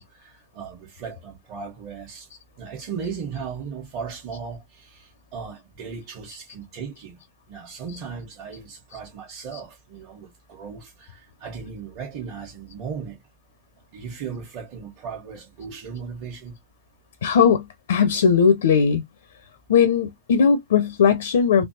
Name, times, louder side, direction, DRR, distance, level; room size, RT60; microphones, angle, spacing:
voice 1, 0.0-2.3 2.6-7.2 7.5-13.2 13.9-16.6, right 6 dB, 40° right, 1.2 m, -36 dB
voice 2, 17.2-19.0 19.7-21.6, left 6 dB, 60° left, 0.5 m, -18 dB
3.3 x 2.7 x 2.6 m
figure-of-eight pair, 90°, 0 cm